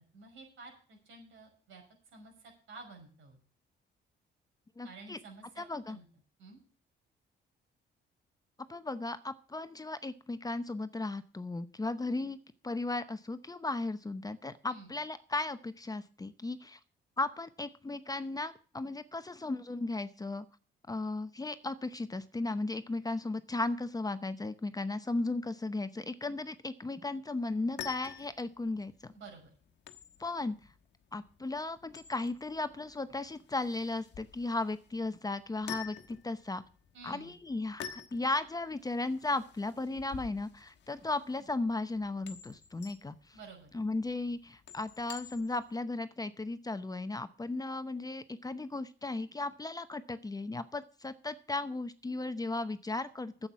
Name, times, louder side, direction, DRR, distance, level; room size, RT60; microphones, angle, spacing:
voice 1, 0.1-1.8 2.1-3.4 4.8-6.1 6.4-6.6 14.7-14.9 29.1-29.5 36.9-37.3 43.3-43.7, right 3 dB, 75° right, 1 dB, 5.8 m, -51 dB
voice 2, 4.8-5.2 5.6-6.0 8.7-12.4 12.6-16.8 17.2-20.4 20.9-29.1 30.2-30.6 31.1-36.6 37.0-43.4 43.7-53.5, left 2 dB, 20° left, 11 dB, 0.8 m, -36 dB
sound 1, 27.5-45.7, left 9 dB, 60° left, 1.2 m, -49 dB
9.8 x 7.9 x 7.2 m, 0.40 s
cardioid pair, 90°, 20 cm